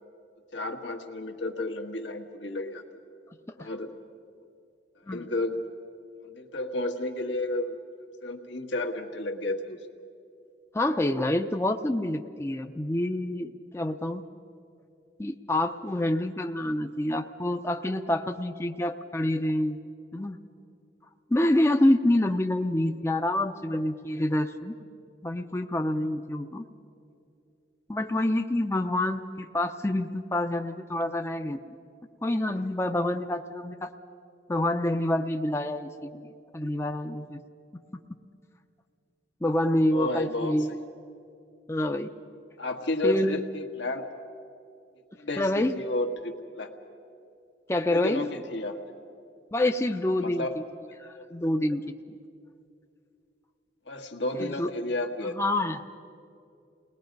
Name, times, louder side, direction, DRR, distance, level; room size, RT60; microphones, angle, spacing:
voice 1, 0.5-2.8 3.6-3.9 5.1-5.6 6.2-7.8 8.2-9.8 39.9-40.6 42.6-44.0 45.2-46.7 47.9-48.8 50.2-50.5 50.9-51.2 53.9-55.4, left 2 dB, 85° left, 4 dB, 1.8 m, -32 dB
voice 2, 10.7-14.2 15.2-19.8 20.1-20.4 21.3-24.7 25.2-26.6 27.9-31.6 32.2-33.9 34.5-36.3 36.5-37.4 39.4-40.7 41.7-42.1 43.0-43.4 45.4-45.7 47.7-48.2 49.5-50.5 51.0-51.8 52.1-52.2 54.4-54.7 55.2-55.8, left 1 dB, 15° left, 6 dB, 0.5 m, -27 dB
29.0 x 19.5 x 5.3 m, 2.5 s
head